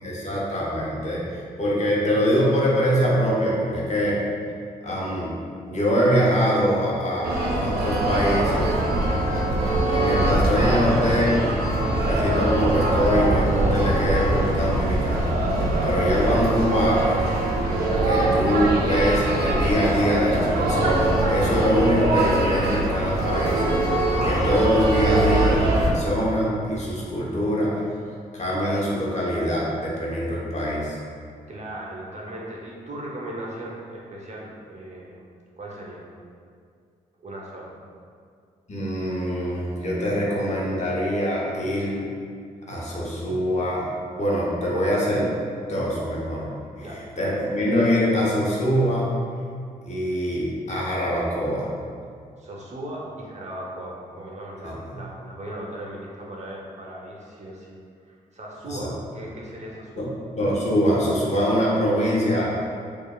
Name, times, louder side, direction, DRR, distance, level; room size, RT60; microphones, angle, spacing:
voice 1, 0.0-4.2 4.8-5.3 5.6-8.8 9.9-11.4 12.0-15.3 15.8-17.2 18.0-23.6 24.2-27.8 28.3-30.9 38.7-42.1 42.6-43.9 44.1-45.3 45.7-46.5 46.8-49.1 49.9-51.7 58.7-58.9 60.0-60.1 60.4-62.5, equal, 45° left, -5 dB, 1.0 m, -23 dB
sound 1, 7.2-25.9, right 1 dB, 75° right, 0.6 m, -22 dB
voice 2, 31.5-35.3 35.6-36.1 37.2-37.7 46.8-47.1 52.4-57.8 58.1-60.1, right 1 dB, 45° right, -4 dB, 0.8 m, -38 dB
4.7 x 2.5 x 2.4 m, 2.2 s
supercardioid pair, 50°, 16 cm